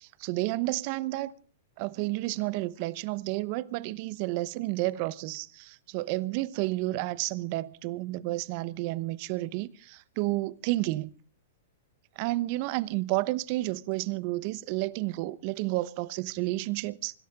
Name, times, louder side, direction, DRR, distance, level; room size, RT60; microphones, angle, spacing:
voice 1, 0.0-1.3 1.8-11.1 12.2-17.2, right 19 dB, 45° right, 0.9 m, -31 dB
25.0 x 13.0 x 3.7 m
hypercardioid pair, 140°, 0 cm